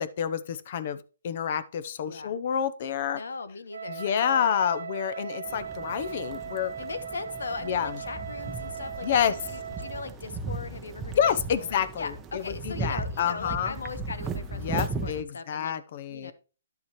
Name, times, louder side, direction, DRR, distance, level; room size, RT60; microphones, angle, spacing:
voice 1, 0.0-3.2 3.9-6.7 7.6-8.0 9.0-9.4 11.2-13.8 14.5-16.3, left 8 dB, 45° left, 14 dB, 0.8 m, -28 dB
voice 2, 3.1-4.6 6.8-11.2 11.5-15.7 16.1-16.3, left 4 dB, 85° left, 12 dB, 1.2 m, -39 dB
Wind instrument woodwind instrument, 3.7-10.1, right 7 dB, 75° right, 0.7 m, -38 dB
sound 1, 5.5-15.2, right 3 dB, 15° right, 0.7 m, -37 dB
11.5 x 7.0 x 3.1 m, 0.35 s
hypercardioid pair, 160°, 0 cm